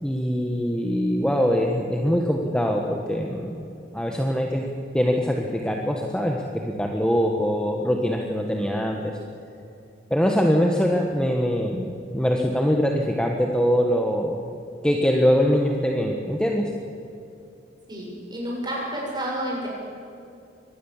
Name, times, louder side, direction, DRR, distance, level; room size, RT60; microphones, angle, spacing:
voice 1, 0.0-3.6 3.9-4.7 4.9-9.1 10.1-14.4 14.8-16.7, equal, 5° left, 1 dB, 1.4 m, -23 dB
voice 2, 17.9-19.7, equal, 20° right, -3 dB, 7.1 m, -30 dB
24.5 x 19.0 x 7.4 m, 2.7 s
head